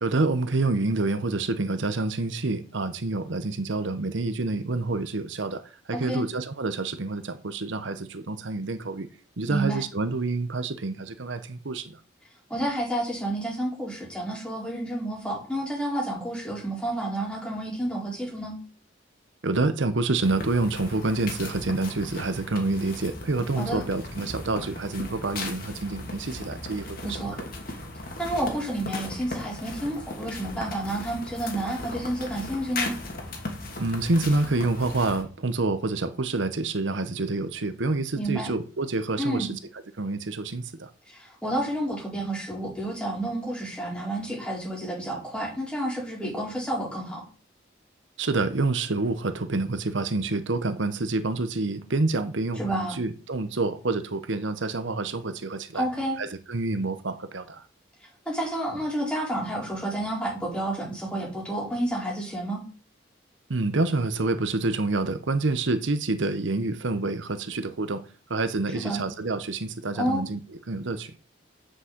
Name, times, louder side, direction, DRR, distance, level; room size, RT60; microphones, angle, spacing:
voice 1, 0.0-9.1 9.4-12.0 19.4-27.5 33.8-39.5 40.0-40.9 48.2-55.8 56.2-57.6 63.5-68.0 68.3-70.4 70.7-71.1, right 3 dB, 75° right, 0.9 m, -27 dB
voice 2, 5.9-6.3 9.5-9.8 12.5-18.5 23.6-23.8 27.0-27.4 28.2-32.9 38.1-38.5 39.2-39.5 41.1-47.2 52.6-53.0 55.7-56.2 58.3-62.6 68.7-69.0 69.9-70.2, right 1 dB, 5° left, 4.5 m, -30 dB
sound 1, 20.2-35.2, left 2 dB, 45° left, 2.7 m, -37 dB
7.7 x 6.3 x 7.9 m
head